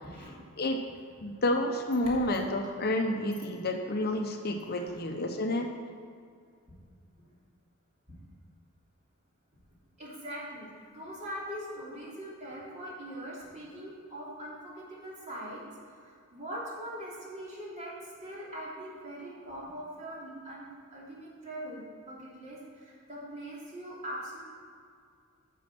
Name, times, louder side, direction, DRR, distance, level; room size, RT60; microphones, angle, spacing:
voice 1, 1.2-5.7, left 1 dB, 45° left, 4 dB, 0.8 m, -30 dB
voice 2, 2.0-2.7 4.7-4.9 7.2-7.3 8.1-8.2 10.0-15.7 16.0-24.4, equal, 30° right, -6 dB, 3.0 m, -42 dB
10.0 x 6.3 x 6.1 m, 2.2 s
head